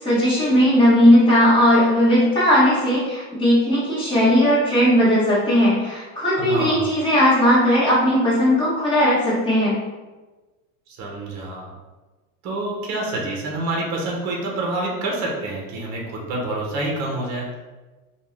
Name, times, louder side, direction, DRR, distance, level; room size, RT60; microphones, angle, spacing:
voice 1, 0.0-9.8, equal, 10° left, -9 dB, 1.1 m, -17 dB
voice 2, 6.4-6.9 10.9-11.7 12.4-17.6, right 2 dB, 40° right, -1 dB, 0.7 m, -27 dB
2.6 x 2.2 x 3.2 m, 1.2 s
supercardioid pair, 145°, 41 cm